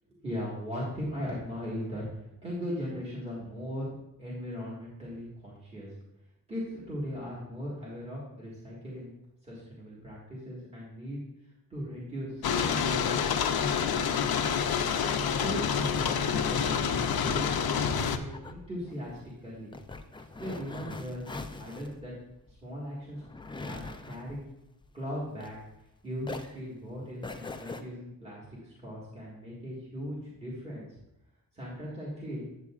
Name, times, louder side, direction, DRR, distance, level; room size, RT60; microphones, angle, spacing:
voice 1, 0.2-3.9 4.2-5.9 6.5-9.1 9.4-11.2 11.7-13.7 14.0-14.6 15.2-19.7 20.4-21.3 21.6-22.1 22.5-23.2 23.6-24.5 24.9-25.6 26.0-30.9 31.5-32.5, equal, 15° right, -7 dB, 1.7 m, -38 dB
sound 1, 12.4-18.2, left 7 dB, 80° left, 0.6 m, -28 dB
sound 2, 17.2-25.9 26.2-27.8, left 3 dB, 15° left, 0.3 m, -43 dB
9.5 x 7.4 x 2.4 m, 0.91 s
wide cardioid pair, 165°, 36 cm